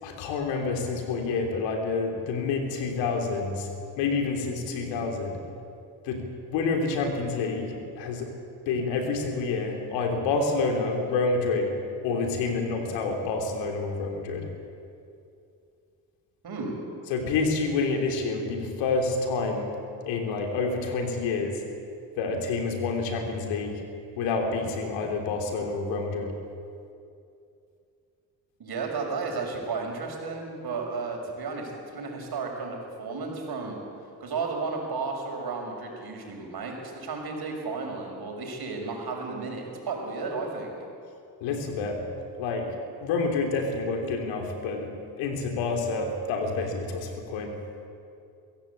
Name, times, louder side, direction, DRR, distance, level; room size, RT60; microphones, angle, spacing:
voice 1, 0.0-3.7 4.0-5.4 6.0-8.3 8.7-11.7 12.0-14.5 17.1-19.7 20.1-21.6 22.2-23.8 24.2-26.4 41.4-42.1 42.4-42.8 43.0-47.6, left 4 dB, 90° left, 3 dB, 3.4 m, -28 dB
voice 2, 16.4-16.8 28.6-33.8 34.2-40.8, right 4 dB, 60° right, 1 dB, 6.2 m, -33 dB
23.0 x 16.0 x 8.4 m, 2.6 s
supercardioid pair, 65°, 43 cm